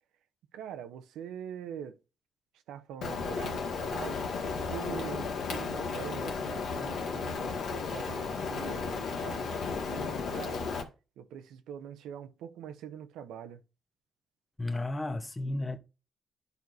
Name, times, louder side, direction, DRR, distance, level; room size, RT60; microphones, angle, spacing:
voice 1, 0.5-2.0 2.7-4.2 4.7-10.7 11.2-13.6, right 9 dB, 90° right, 0.7 m, -43 dB
Rain, 3.0-10.8, left 5 dB, 70° left, 1.5 m, -34 dB
voice 2, 14.6-15.8, left 2 dB, 20° left, 0.9 m, -33 dB
10.5 x 4.6 x 2.6 m
cardioid pair, 90°, 0 cm